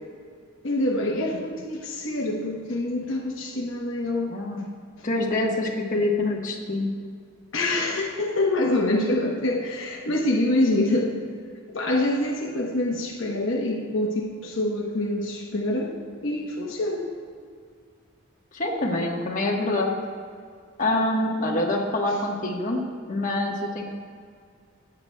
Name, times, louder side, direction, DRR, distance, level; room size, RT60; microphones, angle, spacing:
voice 1, 0.6-4.4 7.5-11.1 11.7-17.2 22.1-22.2, left 1 dB, 65° left, -1 dB, 0.9 m, -26 dB
voice 2, 4.3-4.6 5.0-6.9 18.5-19.9 20.8-22.8 23.1-23.8, left 2 dB, 40° left, -1 dB, 1.1 m, -25 dB
15.5 x 8.7 x 2.2 m, 2.1 s
head